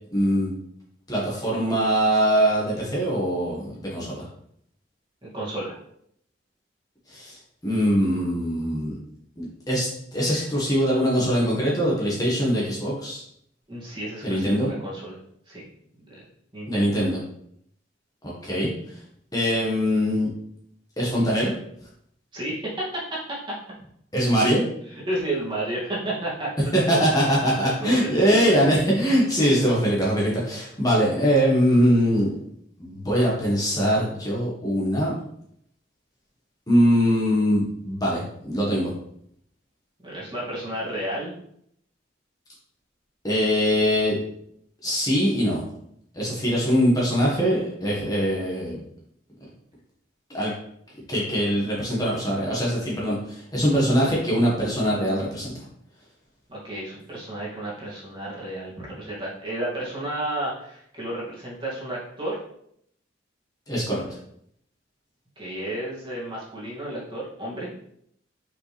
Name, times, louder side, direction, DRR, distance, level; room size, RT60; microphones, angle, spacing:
voice 1, 0.1-0.5 1.1-4.3 7.1-7.4 7.6-8.9 9.4-13.2 14.2-14.7 16.7-17.2 18.2-18.7 19.3-20.3 21.0-21.5 24.1-24.6 26.7-32.3 32.8-35.1 36.7-38.9 43.2-44.2 44.8-45.6 46.1-48.8 50.3-50.5 51.1-55.5 63.7-64.0, equal, 20° left, -5 dB, 1.7 m, -22 dB
voice 2, 5.2-5.7 13.7-15.2 15.5-15.6 16.5-17.0 22.3-23.0 24.9-26.5 26.9-27.0 27.6-28.7 40.0-41.3 56.5-62.4 65.4-67.7, right 1 dB, 25° right, -7 dB, 2.5 m, -32 dB
5.7 x 5.4 x 3.5 m, 0.70 s
head